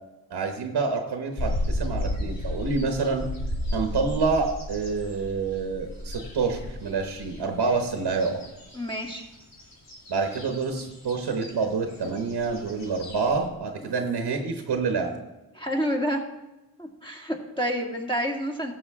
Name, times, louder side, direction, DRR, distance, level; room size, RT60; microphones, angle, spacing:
voice 1, 0.3-3.3 3.7-8.4 10.1-15.1, right 4 dB, 90° right, 4 dB, 1.1 m, -27 dB
sound 1, 1.4-13.5, left 1 dB, 55° left, 3.4 m, -34 dB
voice 2, 8.7-9.2 15.6-16.2 16.8-18.7, equal, 15° left, 1 dB, 2.0 m, -28 dB
14.5 x 7.0 x 3.6 m, 1.1 s
cardioid pair, 55°, 38 cm